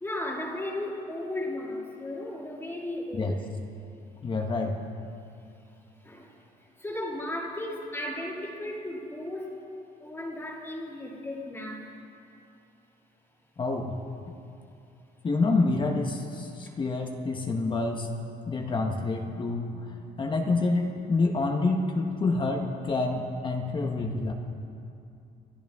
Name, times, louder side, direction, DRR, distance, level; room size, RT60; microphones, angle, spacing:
voice 1, 0.0-3.5 6.0-6.3 6.8-9.6 10.0-11.9, left 1 dB, 15° left, -2 dB, 2.1 m, -35 dB
voice 2, 4.2-4.8 13.6-14.0 15.2-18.1 18.5-24.3, left 3 dB, 30° left, 2 dB, 1.1 m, -27 dB
25.5 x 12.0 x 3.6 m, 2.6 s
cardioid pair, 110°, 17 cm